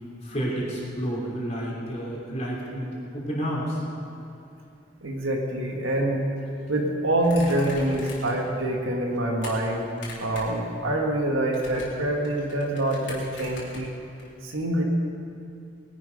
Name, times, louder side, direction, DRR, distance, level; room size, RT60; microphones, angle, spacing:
voice 1, 0.2-3.8, equal, 35° left, -4 dB, 3.4 m, -30 dB
voice 2, 5.0-6.3 6.7-9.9 10.2-13.9 14.4-14.8, right 1 dB, 80° right, 0 dB, 1.8 m, -26 dB
sound 1, 7.2-8.5 8.8-9.5 9.9-10.6 10.9-14.3, left 3 dB, 60° left, 3.7 m, -42 dB
21.0 x 10.5 x 5.4 m, 2.6 s
head